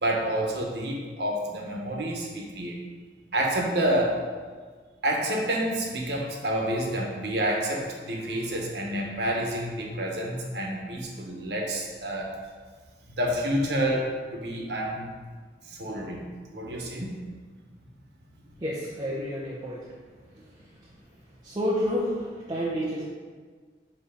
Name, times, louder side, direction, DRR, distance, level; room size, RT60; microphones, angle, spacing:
voice 1, 0.0-2.8 3.3-4.2 5.0-12.3 13.2-15.1 15.6-17.2, right 1 dB, 65° right, -1 dB, 1.3 m, -29 dB
voice 2, 18.6-19.9 20.3-20.9 21.4-23.1, equal, 25° right, -5 dB, 0.8 m, -30 dB
8.0 x 3.3 x 5.0 m, 1.5 s
head